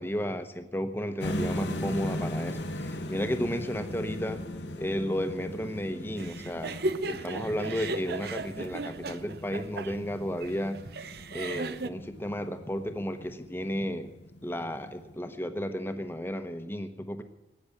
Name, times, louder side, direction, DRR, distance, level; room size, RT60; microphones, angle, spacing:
voice 1, 0.0-4.4 4.8-6.8 7.1-10.8 11.3-14.1 14.4-17.2, equal, 10° left, 8 dB, 1.0 m, -33 dB
sound 1, 1.2-15.2, left 1 dB, 80° left, 1.6 m, -38 dB
sound 2, 6.2-11.9, right 3 dB, 60° right, 0.6 m, -36 dB
17.5 x 9.6 x 8.5 m, 1.0 s
head